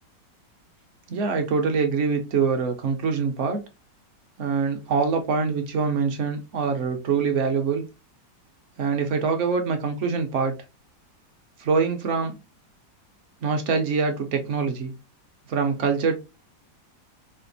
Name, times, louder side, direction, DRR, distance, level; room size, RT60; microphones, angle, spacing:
voice 1, 1.1-3.6 4.4-7.8 8.8-10.5 11.6-12.3 13.4-14.9 15.5-16.2, right 5 dB, 60° right, 0.8 m, -24 dB
5.0 x 2.5 x 2.6 m
omnidirectional pair, 1.9 m